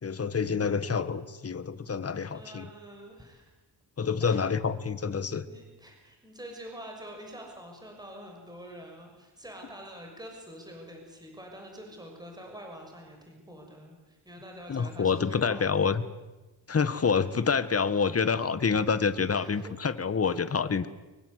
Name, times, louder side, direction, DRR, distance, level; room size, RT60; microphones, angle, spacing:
voice 1, 0.0-2.7 4.0-5.4 14.7-16.0 16.7-20.9, left 5 dB, 35° left, 13 dB, 1.5 m, -27 dB
voice 2, 2.3-3.5 4.2-4.7 5.5-16.0 19.3-19.7, equal, 10° right, 2 dB, 6.5 m, -46 dB
24.0 x 23.5 x 8.2 m, 1.1 s
wide cardioid pair, 120°, 41 cm